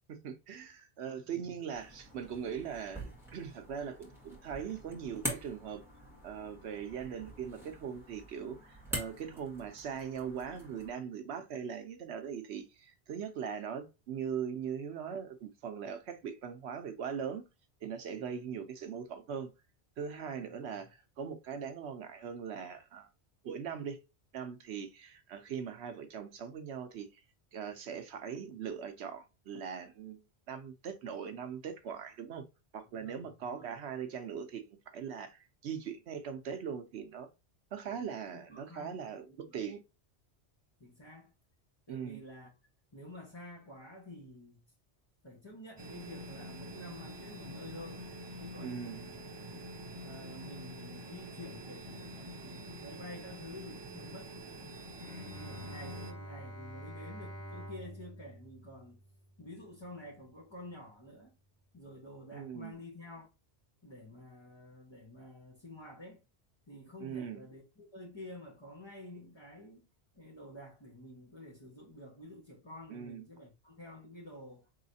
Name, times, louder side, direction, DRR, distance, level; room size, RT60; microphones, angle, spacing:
voice 1, 0.1-5.8 6.2-17.4 17.8-19.5 20.0-23.1 23.4-24.0 24.3-27.2 27.5-30.2 30.5-32.4 32.7-37.3 37.7-39.8 41.9-42.2 48.6-49.0 62.3-62.8 67.0-67.5 72.9-73.2, right 7 dB, 75° right, 0.9 m, -40 dB
sound 1, 1.7-10.9, right 1 dB, ahead, 1.6 m, -45 dB
voice 2, 18.2-18.5 20.4-20.8 32.9-33.7 38.3-39.6 40.8-41.3 41.9-42.5 42.9-44.6 45.2-48.0 48.4-54.6 55.0-59.0 59.4-61.4 61.7-63.3 63.8-66.2 66.7-69.8 70.1-74.7, left 1 dB, 25° left, 1.3 m, -50 dB
sound 2, 45.8-56.1, right 1 dB, 35° right, 0.4 m, -46 dB
Bowed string instrument, 55.0-60.3, right 1 dB, 80° left, 1.7 m, -48 dB
4.7 x 3.1 x 2.7 m
omnidirectional pair, 1.1 m